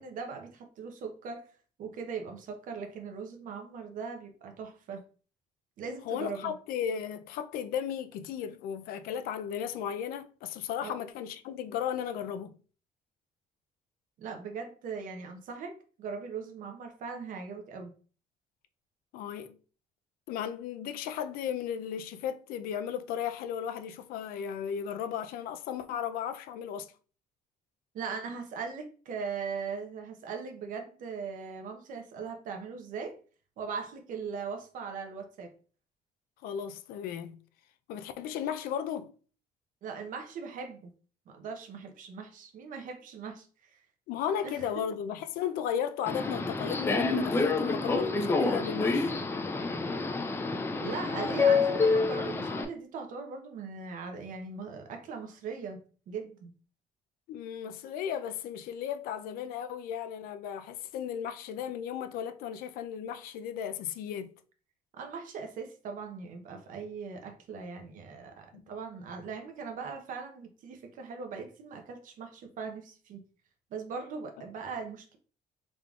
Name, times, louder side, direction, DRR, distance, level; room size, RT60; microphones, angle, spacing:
voice 1, 0.0-1.5 1.8-5.0 5.8-6.5 10.8-11.0 14.2-17.9 27.9-33.2 33.6-35.5 39.8-40.9 41.3-43.5 43.7-43.8 44.4-44.8 50.8-56.5 64.9-73.2 73.7-75.2, right 5 dB, 65° right, 0.8 m, -40 dB
voice 2, 6.1-12.5 19.1-19.6 20.3-26.9 36.4-37.4 37.9-39.1 44.1-49.1 57.3-64.3 68.5-68.7, left 9 dB, 85° left, 0.4 m, -35 dB
Subway metro underground, 46.1-52.6, left 4 dB, 15° left, 0.4 m, -28 dB
3.7 x 3.5 x 2.3 m
cardioid pair, 125°, 15 cm